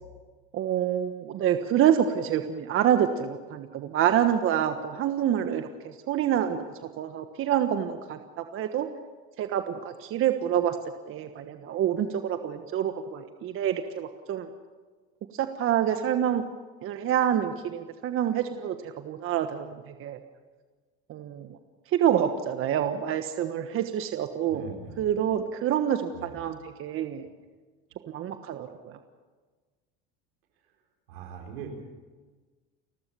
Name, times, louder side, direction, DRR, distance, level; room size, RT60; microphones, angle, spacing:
voice 1, 0.5-8.9 9.4-10.8 11.1-14.5 15.3-16.5 16.8-20.2 21.1-21.6 21.9-24.7 25.0-27.3 28.1-29.0, right 10 dB, 45° right, 7 dB, 1.4 m, -27 dB
voice 2, 24.5-25.1 26.1-26.4 31.1-31.7, right 7 dB, 85° right, 3 dB, 4.6 m, -41 dB
30.0 x 13.5 x 7.0 m, 1.4 s
supercardioid pair, 105°, 30 cm